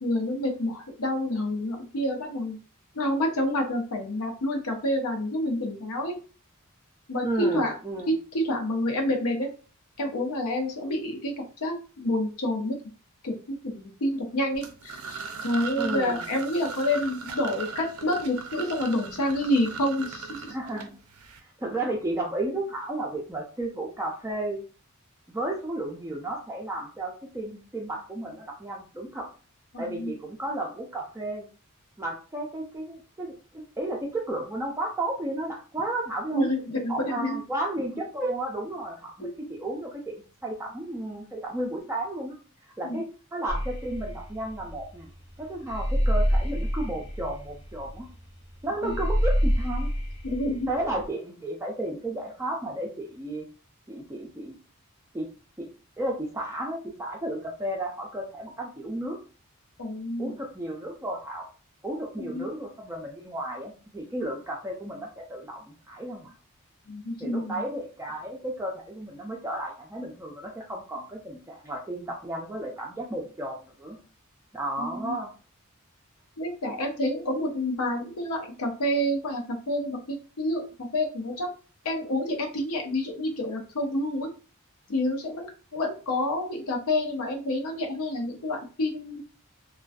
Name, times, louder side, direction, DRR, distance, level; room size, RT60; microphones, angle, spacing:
voice 1, 0.0-2.6 2.9-6.2 7.1-7.8 8.1-9.5 10.0-12.8 13.2-20.5 29.7-30.1 36.3-37.4 39.2-39.3 42.8-43.0 48.8-48.9 50.2-50.7 59.8-60.3 62.2-62.5 66.9-67.5 74.8-75.2 76.4-81.5 81.8-84.3 84.9-89.2, left 1 dB, 90° left, 4 dB, 0.6 m, -28 dB
voice 2, 7.2-8.1 15.8-16.2 20.5-21.0 21.6-24.6 25.3-29.3 29.8-31.5 32.0-36.5 36.9-42.4 42.8-45.1 45.4-48.1 48.6-49.9 50.7-53.5 53.9-54.6 55.1-55.3 55.6-55.7 56.0-59.2 60.2-61.5 61.8-66.3 67.2-74.0 74.5-75.3, right 1 dB, 10° right, -1 dB, 0.3 m, -33 dB
sound 1, 14.5-21.4, right 5 dB, 85° right, 0.4 m, -38 dB
sound 2, 43.5-51.1, equal, 30° left, 0.6 m, -27 dB
2.5 x 2.2 x 2.3 m, 0.36 s
head